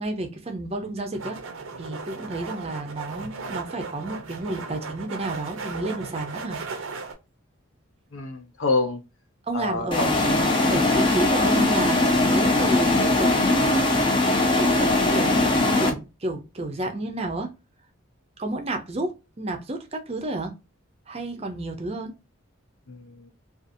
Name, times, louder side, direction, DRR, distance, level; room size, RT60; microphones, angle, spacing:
voice 1, 0.0-1.4 1.8-6.6 9.5-17.6 18.4-20.6 21.1-22.2, right 2 dB, 30° right, 0.5 m, -31 dB
sound 1, 1.1-7.1, right 4 dB, 75° right, 0.6 m, -36 dB
voice 2, 8.1-9.0 9.5-10.1 22.9-23.3, left 3 dB, 70° left, 0.7 m, -27 dB
sound 2, 9.9-15.9, left 2 dB, 25° left, 0.5 m, -20 dB
2.6 x 2.4 x 2.5 m
head